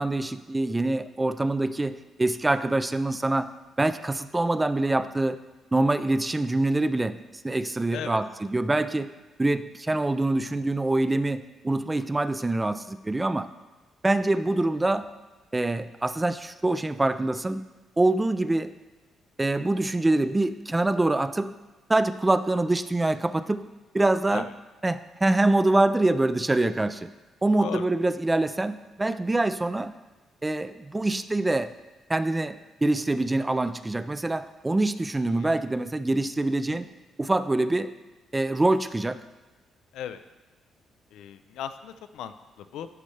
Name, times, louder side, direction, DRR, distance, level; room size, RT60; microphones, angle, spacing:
voice 1, 0.0-3.5 3.8-5.4 5.7-7.2 7.4-9.1 9.4-13.5 14.0-15.1 15.5-17.7 18.0-18.7 19.4-21.5 21.9-23.6 23.9-24.5 24.8-27.1 27.4-29.9 30.4-31.7 32.1-36.9 37.2-37.9 38.3-39.2, right 2 dB, 15° right, 13 dB, 0.3 m, -25 dB
voice 2, 41.1-42.9, left 9 dB, 85° left, 10 dB, 0.4 m, -37 dB
11.5 x 4.2 x 3.2 m, 1.1 s
cardioid pair, 90°, 0 cm